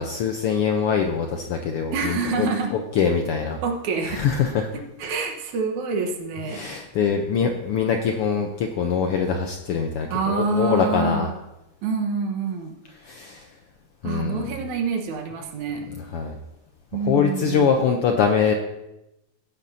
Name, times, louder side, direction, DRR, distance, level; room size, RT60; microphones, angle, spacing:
voice 1, 0.0-3.6 4.0-4.7 6.5-11.3 13.0-13.5 14.0-14.6 16.1-16.4 17.0-18.5, left 6 dB, 80° left, 4 dB, 1.3 m, -23 dB
voice 2, 1.9-2.7 3.6-4.2 5.0-6.6 10.1-11.3 11.8-12.7 14.0-15.9 16.9-17.7, right 4 dB, 85° right, 3 dB, 2.5 m, -26 dB
16.0 x 9.7 x 2.7 m, 0.94 s
omnidirectional pair, 3.3 m